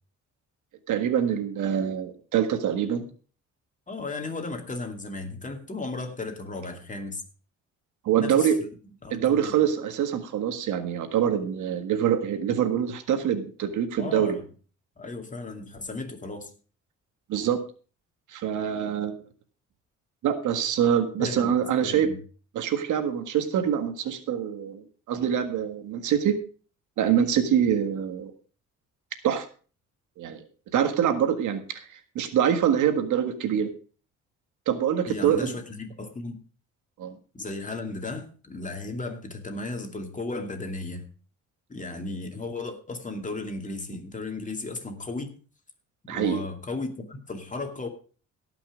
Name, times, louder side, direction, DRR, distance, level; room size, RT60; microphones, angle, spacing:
voice 1, 0.9-3.1 8.0-8.6 9.1-14.4 17.3-17.6 18.3-19.2 20.2-22.1 22.5-26.4 27.0-28.3 29.2-29.5 30.2-30.4 30.7-31.9 32.1-33.7 34.7-35.5 37.0-37.2 46.1-46.4, right 9 dB, 80° right, 8 dB, 1.7 m, -25 dB
voice 2, 3.9-7.2 8.2-8.5 9.0-9.5 14.0-14.4 15.0-16.5 21.2-21.5 21.8-22.2 35.1-36.4 37.3-41.1 41.7-45.3 46.1-47.9, left 3 dB, 25° left, 4 dB, 2.5 m, -35 dB
17.5 x 6.0 x 5.0 m, 0.39 s
cardioid pair, 90°, 30 cm